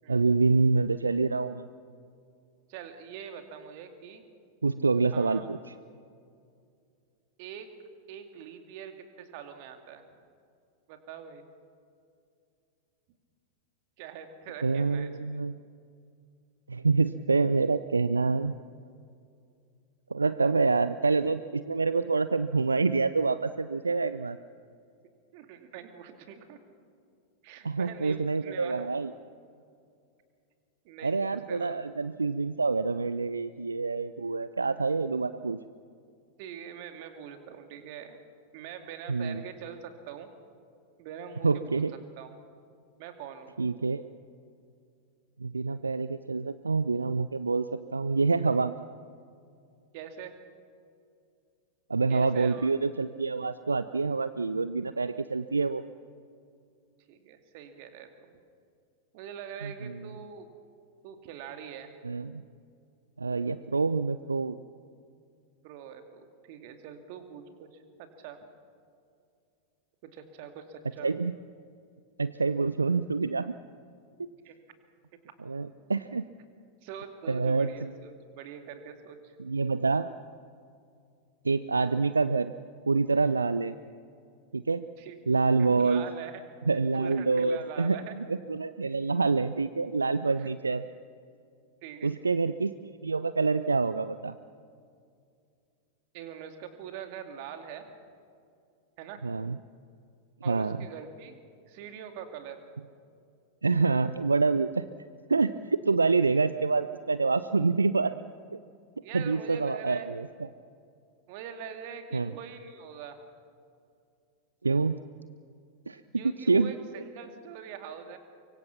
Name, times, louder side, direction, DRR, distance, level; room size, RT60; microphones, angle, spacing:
voice 1, 0.1-1.7 4.6-5.6 14.6-15.6 16.7-18.6 20.1-24.4 27.6-29.1 31.0-35.6 39.1-39.4 41.4-41.9 43.6-44.1 45.4-48.7 51.9-55.8 59.6-60.0 62.0-62.4 63.2-64.6 71.0-71.3 72.2-73.5 75.4-76.3 77.3-77.9 79.4-80.1 81.4-82.5 82.9-83.7 84.5-84.8 85.3-86.1 86.7-90.8 92.0-92.7 93.0-94.3 99.2-99.6 100.5-100.8 103.6-104.9 105.3-108.1 108.5-108.6 109.1-110.3 112.1-112.3 114.6-115.0 115.9-116.7, right 4 dB, 80° right, 14 dB, 0.5 m, -27 dB
voice 2, 2.7-4.2 5.1-5.4 7.4-7.7 8.1-10.1 10.9-11.5 14.0-15.1 25.3-26.6 27.4-28.9 30.8-31.8 36.4-38.2 38.5-40.3 41.0-41.8 42.2-42.3 43.0-43.6 49.9-50.3 52.1-52.7 57.1-58.3 59.1-60.5 61.0-61.9 65.6-68.5 70.0-71.1 74.4-74.6 76.8-79.4 85.0-85.2 85.6-86.4 86.9-88.1 90.4-90.5 91.8-92.1 96.1-97.9 99.0-99.2 100.4-101.4 101.7-102.6 109.0-110.2 111.3-113.2 116.1-118.2, right 8 dB, 45° right, 7 dB, 2.4 m, -43 dB
24.5 x 23.5 x 5.9 m, 2.4 s
figure-of-eight pair, 90°, 0 cm